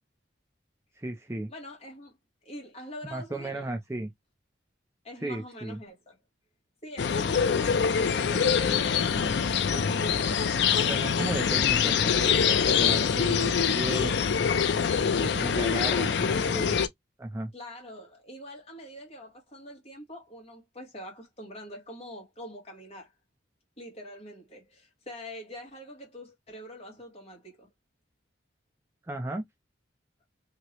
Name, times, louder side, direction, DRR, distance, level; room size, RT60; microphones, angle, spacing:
voice 1, 1.0-1.5 3.0-4.1 5.2-5.8 10.8-14.2 15.4-16.8 17.2-17.5 29.1-29.4, right 1 dB, 15° right, 0.4 m, -34 dB
voice 2, 1.5-2.2 2.4-3.7 5.0-6.2 6.8-10.4 15.0-15.5 15.8-16.2 17.5-23.1 23.8-27.7, equal, 30° left, 1.3 m, -44 dB
sound 1, 7.0-16.9, left 7 dB, 60° left, 0.4 m, -25 dB
3.0 x 2.8 x 3.0 m
head